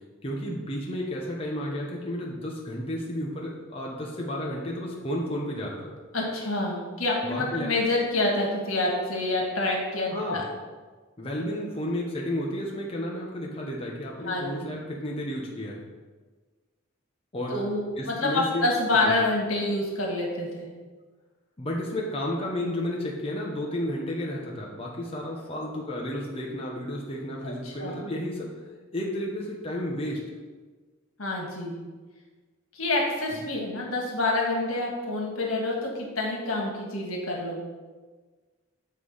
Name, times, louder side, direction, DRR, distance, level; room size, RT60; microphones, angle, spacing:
voice 1, 0.2-5.9 7.3-7.7 10.1-10.4 11.2-15.8 17.3-17.6 18.0-18.7 19.0-19.1 21.6-28.5 28.9-30.2, left 1 dB, 30° left, -3 dB, 0.9 m, -32 dB
voice 2, 6.1-10.4 14.2-14.7 17.5-20.7 27.4-28.0 31.2-31.8 32.7-37.6, left 2 dB, 85° left, -1 dB, 1.7 m, -27 dB
8.3 x 3.3 x 5.5 m, 1.4 s
head